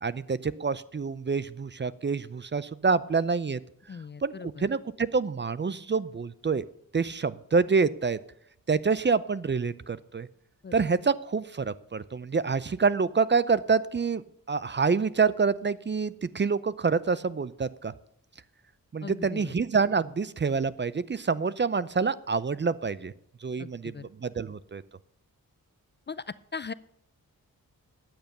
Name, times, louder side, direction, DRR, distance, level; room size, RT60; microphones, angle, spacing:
voice 1, 0.0-3.6 4.2-4.3 4.6-6.6 6.9-8.2 8.7-10.3 10.7-14.2 14.5-17.9 18.9-23.1 23.4-23.9 24.2-24.8, right 5 dB, 30° right, 17 dB, 0.5 m, -27 dB
voice 2, 3.9-4.7 10.6-10.9 19.0-19.5 23.6-24.1 26.1-26.7, left 5 dB, 30° left, 17 dB, 0.4 m, -39 dB
10.5 x 8.8 x 6.6 m, 0.72 s
cardioid pair, 60°, 36 cm